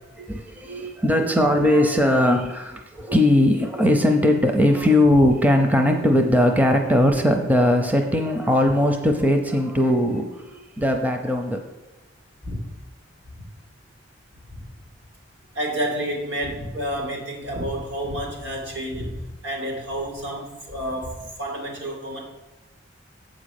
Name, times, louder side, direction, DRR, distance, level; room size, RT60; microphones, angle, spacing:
voice 1, 0.0-11.6, left 1 dB, 10° right, 4 dB, 0.6 m, -19 dB
voice 2, 15.5-22.2, equal, 75° right, -1 dB, 2.5 m, -30 dB
7.9 x 5.1 x 6.5 m, 1.1 s
head